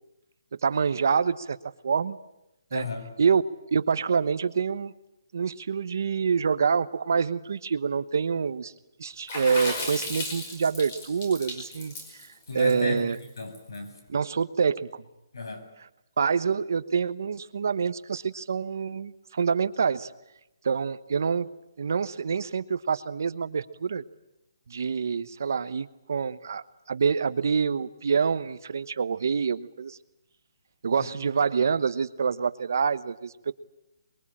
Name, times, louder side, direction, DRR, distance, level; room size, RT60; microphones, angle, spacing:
voice 1, 0.6-1.6 1.8-2.2 2.7-2.9 3.2-3.4 3.7-4.9 5.3-8.7 9.0-11.9 12.5-13.2 14.1-15.0 16.2-20.1 20.6-21.5 21.8-24.0 24.7-30.0 30.8-33.5, right 6 dB, 50° right, 14 dB, 1.1 m, -26 dB
voice 2, 2.7-3.1 12.5-14.0 15.3-15.7 31.0-31.2, left 3 dB, 80° left, 7 dB, 7.3 m, -35 dB
Water / Splash splatter, 9.3-13.8, left 2 dB, 25° left, 5.2 m, -35 dB
25.0 x 22.5 x 8.7 m, 0.89 s
hypercardioid pair, 180°, 2 cm